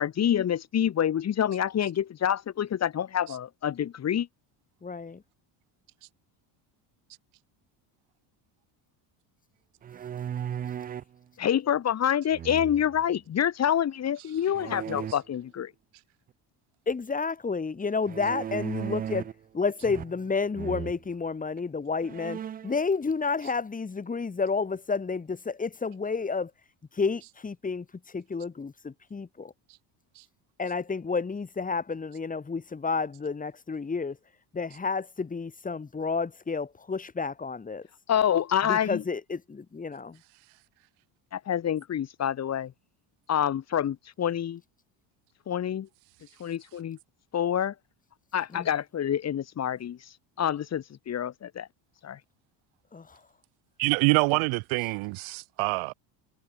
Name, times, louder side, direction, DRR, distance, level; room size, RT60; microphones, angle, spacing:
voice 1, 0.0-4.3 11.4-15.7 38.1-39.0 41.3-42.7 43.3-44.6 45.5-45.9 46.4-47.0 47.3-47.7 48.3-50.0 50.4-51.7 52.0-52.2, left 9 dB, 35° left, 1.8 m, -27 dB
voice 2, 4.8-5.2 16.9-26.5 26.9-27.8 28.1-29.5 30.6-34.2 34.5-37.9 38.6-40.2 48.5-48.7 52.9-53.1, left 4 dB, 15° left, 3.2 m, -30 dB
sound 1, 9.8-11.1 12.3-13.0 14.5-15.1 18.1-19.4 19.8-20.3 20.5-21.0 21.6-21.7 22.0-22.8, right 9 dB, 20° right, 0.3 m, -36 dB
voice 3, 53.8-55.9, right 29 dB, 80° right, 1.4 m, -25 dB
cardioid pair, 145°, 47 cm